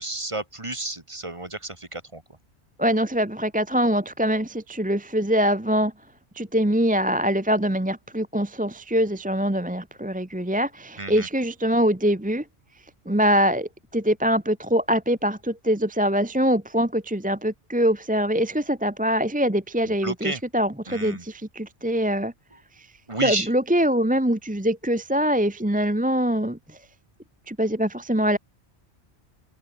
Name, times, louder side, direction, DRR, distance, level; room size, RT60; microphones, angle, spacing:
voice 1, 0.0-2.2 11.0-11.3 20.0-20.4 20.9-21.2 23.1-23.5, right 2 dB, 25° right, 2.0 m, -31 dB
voice 2, 2.8-5.9 6.3-12.4 13.1-22.3 22.8-22.9 23.2-26.8 27.5-28.4, equal, 10° right, 1.0 m, -23 dB
omnidirectional pair, 1.1 m